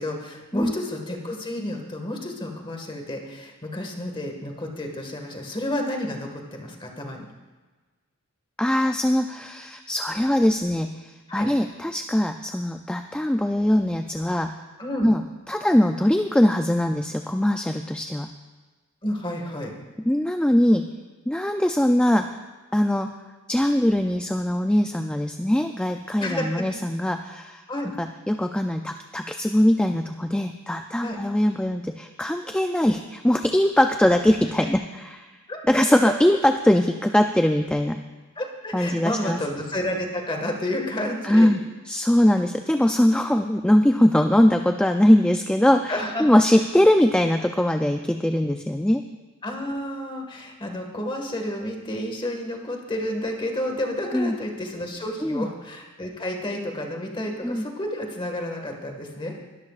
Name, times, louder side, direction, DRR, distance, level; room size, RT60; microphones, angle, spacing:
voice 1, 0.0-7.3 11.3-11.5 14.8-15.1 19.0-19.7 26.2-26.5 27.7-27.9 31.0-31.2 34.6-34.7 35.5-36.1 38.3-41.5 43.1-43.3 45.9-46.3 49.4-59.4, left 1 dB, 25° left, 2 dB, 1.7 m, -30 dB
voice 2, 8.6-14.5 15.0-18.3 20.1-20.9 21.3-22.3 22.7-23.1 23.5-27.6 28.0-35.3 35.7-38.0 38.7-39.4 41.2-41.6 41.9-49.0 54.1-54.3 55.2-55.5 57.4-57.6, left 1 dB, 5° left, 5 dB, 0.3 m, -21 dB
22.0 x 13.0 x 2.5 m, 1.3 s
head